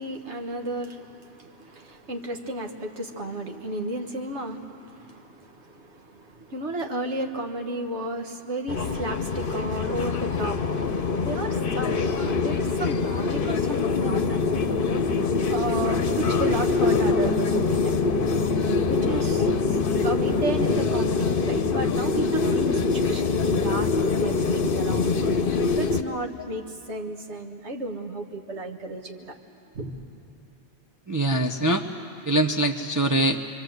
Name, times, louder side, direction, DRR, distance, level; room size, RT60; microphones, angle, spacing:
voice 1, 0.0-10.7 11.2-14.4 15.5-18.1 18.9-25.4 25.8-29.4 29.7-30.0, right 1 dB, 75° right, 4 dB, 1.8 m, -33 dB
sound 1, 8.7-26.0, left 4 dB, 55° left, 1.0 m, -24 dB
voice 2, 31.1-31.9 32.2-33.4, right 1 dB, 20° right, 2 dB, 0.7 m, -23 dB
26.0 x 24.0 x 8.0 m, 2.7 s
omnidirectional pair, 1.2 m